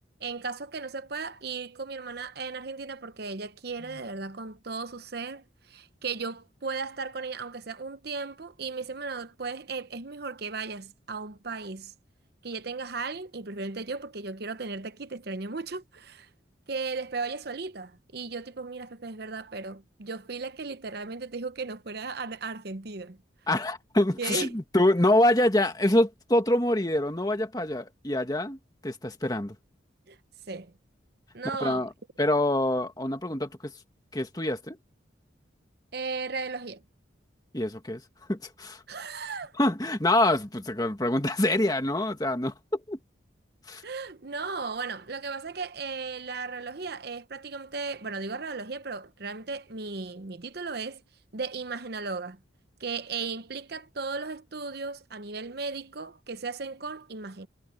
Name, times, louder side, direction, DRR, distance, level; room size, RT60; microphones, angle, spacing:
voice 1, 0.2-11.9 12.4-16.3 16.7-23.2 24.2-24.5 30.1-30.2 30.5-30.7 31.3-31.8 35.9-36.8 38.9-39.5 43.8-51.0 51.3-52.4 52.8-57.5, right 4 dB, 55° right, 0.9 m, -36 dB
voice 2, 23.5-29.6 31.6-31.9 32.2-33.7 34.1-34.8 37.5-38.0 38.3-38.8 39.6-43.0 43.7-43.8, left 1 dB, 20° left, 1.7 m, -25 dB
head